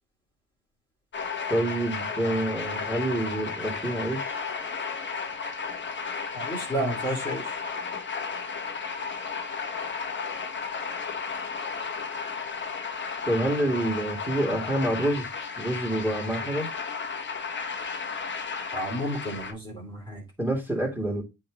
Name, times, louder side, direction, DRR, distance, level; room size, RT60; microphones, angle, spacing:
sound 1, 1.1-19.5, left 5 dB, 40° left, 1.2 m, -34 dB
voice 1, 1.5-4.4 13.2-15.3 15.6-16.7 20.4-21.2, right 1 dB, 5° right, 3.2 m, -27 dB
voice 2, 6.3-7.6 18.7-20.2, right 1 dB, 15° left, 2.7 m, -31 dB
8.3 x 3.5 x 3.8 m
cardioid pair, 90°, 30 cm